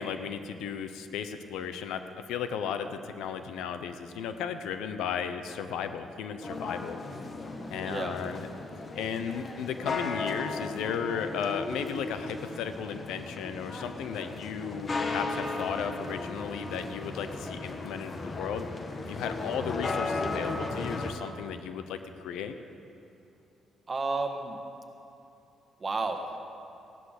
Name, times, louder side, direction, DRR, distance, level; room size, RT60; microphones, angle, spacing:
voice 1, 0.0-7.0 7.7-8.4 9.0-18.7 19.0-22.5, left 7 dB, 90° left, 9 dB, 0.8 m, -35 dB
sound 1, 6.4-21.1, left 3 dB, 35° left, 1.3 m, -36 dB
voice 2, 7.8-8.2 23.9-24.6 25.8-26.4, right 3 dB, 30° right, 4 dB, 1.6 m, -31 dB
15.5 x 11.5 x 6.6 m, 2.8 s
cardioid pair, 90°, 0 cm